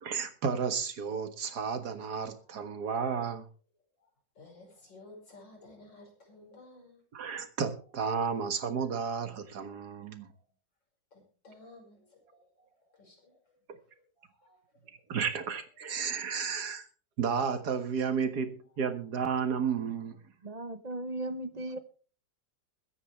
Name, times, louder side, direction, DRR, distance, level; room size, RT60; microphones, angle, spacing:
voice 1, 0.0-3.5 7.1-10.3 13.7-13.8 15.1-16.9 17.2-20.2, right 6 dB, 60° right, 2.1 m, -32 dB
voice 2, 2.4-2.8 4.0-4.1 4.3-7.0 9.3-9.4 10.3-10.4 11.1-13.6 13.8-15.1 18.5-18.6 21.6-21.7, left 2 dB, 80° left, 6.5 m, -56 dB
voice 3, 20.4-21.8, right 1 dB, 30° right, 0.8 m, -37 dB
22.0 x 9.9 x 3.4 m
omnidirectional pair, 2.0 m